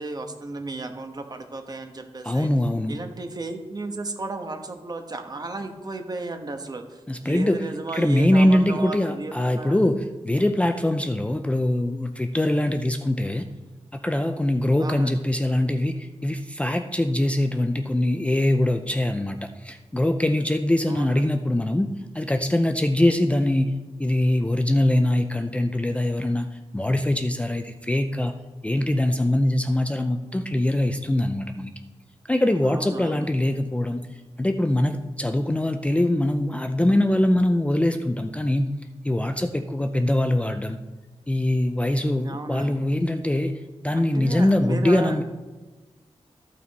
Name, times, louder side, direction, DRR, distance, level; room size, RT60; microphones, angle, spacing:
voice 1, 0.0-2.5 2.9-9.8 14.8-15.2 20.9-21.2 32.6-33.3 42.2-42.8 43.9-45.2, right 2 dB, 35° right, 5 dB, 1.1 m, -34 dB
voice 2, 2.2-3.0 7.1-7.6 7.9-13.5 14.0-23.7 24.0-26.5 26.7-28.3 28.6-31.7 32.3-34.1 34.4-38.7 39.0-40.8 41.3-43.6 43.8-45.2, left 1 dB, 10° left, 7 dB, 0.5 m, -23 dB
14.0 x 5.8 x 4.1 m, 1.3 s
wide cardioid pair, 125°, 11 cm